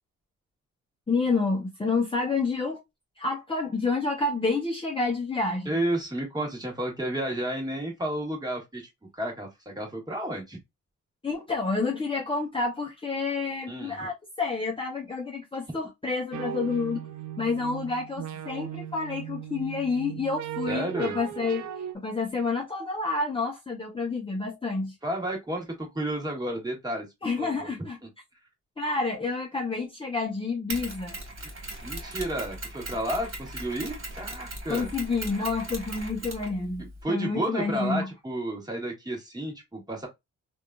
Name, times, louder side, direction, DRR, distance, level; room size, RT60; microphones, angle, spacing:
voice 1, 1.1-2.8 3.2-5.8 11.2-17.0 17.4-21.6 21.9-25.0 27.2-28.0 28.8-31.2 34.7-38.1, left 4 dB, 15° left, 0.7 m, -29 dB
voice 2, 5.6-10.6 13.7-14.1 20.7-21.2 25.0-27.1 27.4-27.7 31.4-31.5 31.8-34.9 37.0-40.1, right 1 dB, 15° right, 1.4 m, -32 dB
sound 1, 16.3-21.9, right 10 dB, 70° right, 0.5 m, -37 dB
Mechanisms, 30.7-37.0, right 1 dB, 45° right, 1.6 m, -38 dB
3.4 x 2.5 x 2.2 m
cardioid pair, 110°, 30 cm